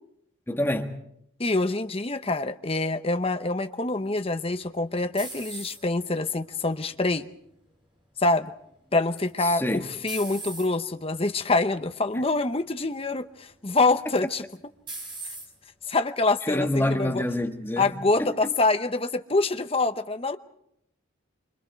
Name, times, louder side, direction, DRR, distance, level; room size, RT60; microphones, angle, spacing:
voice 1, 0.5-0.9 9.5-9.8 16.5-17.9 18.2-18.3, left 1 dB, 10° left, 1.4 m, -26 dB
voice 2, 1.4-7.3 8.2-8.5 8.9-14.4 15.9-17.2 17.8-20.4, left 2 dB, 25° left, 0.8 m, -25 dB
sound 1, 4.2-6.1 6.6-7.1 9.2-9.5 10.1-10.7 11.5-11.7 12.1-12.2 14.2-14.5 14.9-15.5, right 2 dB, 20° right, 5.7 m, -39 dB
27.5 x 25.5 x 4.6 m
head